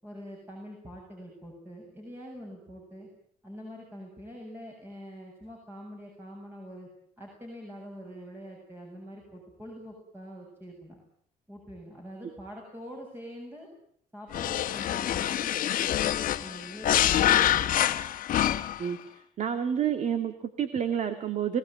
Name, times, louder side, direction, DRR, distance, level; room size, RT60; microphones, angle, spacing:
voice 1, 0.0-3.1 3.4-6.9 7.2-11.0 11.5-13.7 14.1-17.7, equal, 15° right, 0 dB, 8.0 m, -45 dB
sound 1, 14.3-18.9, left 12 dB, 60° left, 1.6 m, -26 dB
voice 2, 19.4-21.6, right 8 dB, 50° right, 9 dB, 2.1 m, -29 dB
25.0 x 19.0 x 9.2 m, 0.62 s
cardioid pair, 120°, 15 cm